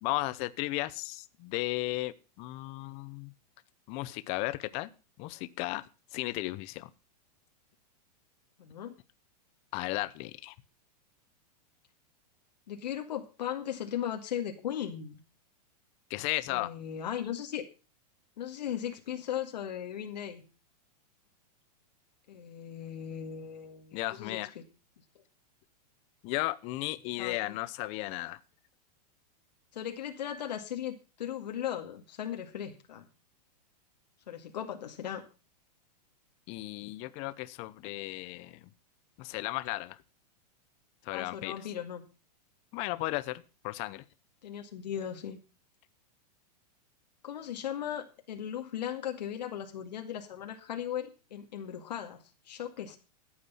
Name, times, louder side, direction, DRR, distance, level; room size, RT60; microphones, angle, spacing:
voice 1, 0.0-3.3 3.9-4.9 5.2-5.8 6.1-6.9 9.7-10.5 16.1-16.7 23.9-24.5 26.2-28.4 36.5-38.7 39.2-40.0 41.0-41.5 42.7-44.0, left 19 dB, 30° left, 15 dB, 0.7 m, -35 dB
voice 2, 8.6-9.0 12.7-15.2 16.5-17.6 18.4-20.4 22.3-24.6 27.2-27.6 29.7-33.1 34.3-35.2 41.1-42.0 44.4-45.4 47.2-53.0, left 10 dB, 85° left, 3 dB, 2.2 m, -37 dB
14.0 x 8.7 x 5.6 m, 0.33 s
supercardioid pair, 155°, 21 cm